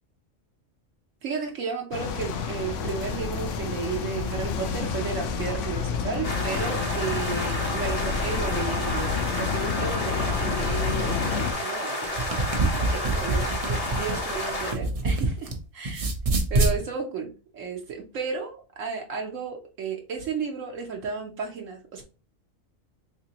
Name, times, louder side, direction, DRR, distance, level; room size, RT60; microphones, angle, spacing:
voice 1, 1.2-12.5 12.9-15.5 15.8-16.0 16.5-22.0, right 5 dB, 70° right, 1 dB, 1.0 m, -33 dB
sound 1, 1.9-11.5, left 6 dB, 70° left, 0.9 m, -29 dB
sound 2, 6.2-14.7, left 1 dB, 30° left, 0.8 m, -31 dB
sound 3, 12.0-15.5 15.8-16.8, right 2 dB, 40° right, 0.5 m, -25 dB
3.6 x 3.3 x 2.8 m, 0.34 s
omnidirectional pair, 1.4 m